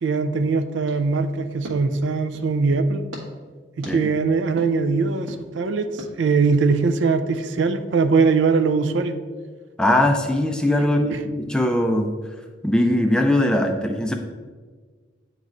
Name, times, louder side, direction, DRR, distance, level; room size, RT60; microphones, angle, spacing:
voice 1, 0.0-3.0 3.8-9.2 10.8-11.2, right 4 dB, 70° right, 9 dB, 0.4 m, -21 dB
sound 1, 0.8-2.6 3.1-3.2 3.8-3.9 4.6-4.7 5.3-5.4 6.0-6.1, equal, 90° right, 1.4 m, -39 dB
voice 2, 9.8-12.1 12.6-14.1, left 1 dB, 5° left, 4 dB, 0.4 m, -20 dB
9.0 x 3.1 x 3.8 m, 1.5 s
head